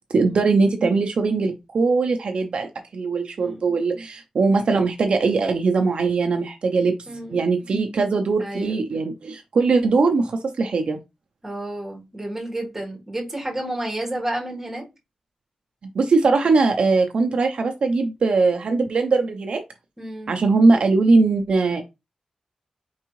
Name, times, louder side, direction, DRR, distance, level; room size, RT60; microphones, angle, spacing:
voice 1, 0.1-6.9 7.3-11.0 15.9-19.6 20.3-21.8, right 3 dB, 60° right, 0.5 m, -20 dB
voice 2, 3.4-3.7 7.1-7.4 8.4-8.8 11.4-14.8 20.0-20.4, right 1 dB, 15° right, 1.4 m, -31 dB
4.6 x 3.5 x 3.0 m
wide cardioid pair, 160°, 2 cm